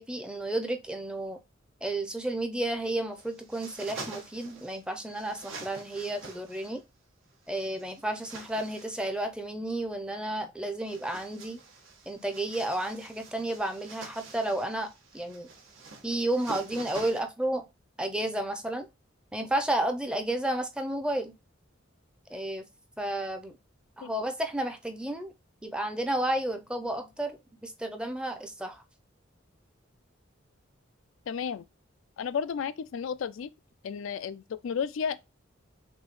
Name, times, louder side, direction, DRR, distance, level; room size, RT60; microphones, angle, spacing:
voice 1, 0.0-1.4 1.8-6.8 7.5-11.6 12.1-15.5 16.0-17.7 18.0-18.9 19.3-21.3 22.3-22.7 23.0-23.5 24.0-25.3 25.6-28.8, right 1 dB, 5° right, 0.6 m, -32 dB
sound 1, 3.1-4.8 5.1-6.8 7.5-9.1 10.7-17.2, right 3 dB, 80° right, 1.4 m, -46 dB
voice 2, 31.3-31.6 32.2-33.5 33.8-35.2, left 7 dB, 75° left, 0.4 m, -32 dB
6.1 x 2.7 x 3.0 m
head